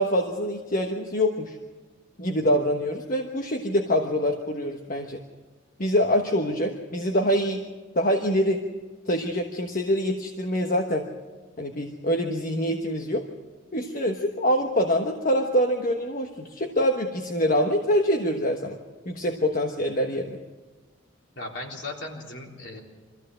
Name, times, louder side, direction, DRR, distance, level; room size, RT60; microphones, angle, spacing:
voice 1, 0.0-1.6 2.2-5.2 5.8-7.6 7.9-8.6 9.1-11.0 11.6-13.2 13.7-18.8 19.0-20.4, equal, 45° left, 3 dB, 1.3 m, -25 dB
voice 2, 21.4-22.8, left 2 dB, 65° left, -1 dB, 3.7 m, -37 dB
24.5 x 15.0 x 7.6 m, 1.3 s
head